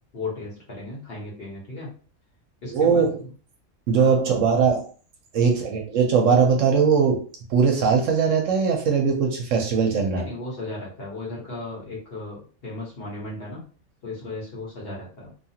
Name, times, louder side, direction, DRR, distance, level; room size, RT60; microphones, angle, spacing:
voice 1, 0.1-1.9 2.6-3.3 4.0-4.2 10.1-13.6 14.0-15.3, left 2 dB, 45° left, -4 dB, 1.2 m, -35 dB
voice 2, 2.7-3.1 3.9-4.9 5.3-10.3, right 6 dB, 70° right, 2 dB, 0.9 m, -20 dB
2.7 x 2.4 x 2.7 m, 0.39 s
omnidirectional pair, 1.5 m